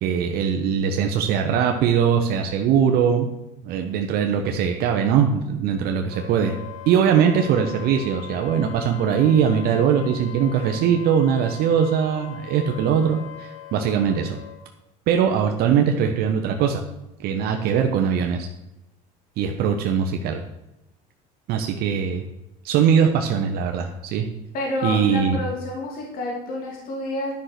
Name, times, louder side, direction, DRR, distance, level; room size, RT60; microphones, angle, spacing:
voice 1, 0.0-3.3 3.6-6.5 6.9-14.4 15.1-16.8 17.2-18.5 19.4-20.4 21.5-22.2 22.6-24.3 24.8-25.4, right 7 dB, 60° right, 4 dB, 1.1 m, -21 dB
Wind instrument woodwind instrument, 6.1-14.6, left 11 dB, 85° left, 4.4 m, -40 dB
voice 2, 24.5-27.3, left 2 dB, 55° left, -1 dB, 2.9 m, -29 dB
11.0 x 5.9 x 6.7 m, 0.93 s
supercardioid pair, 110°, 18 cm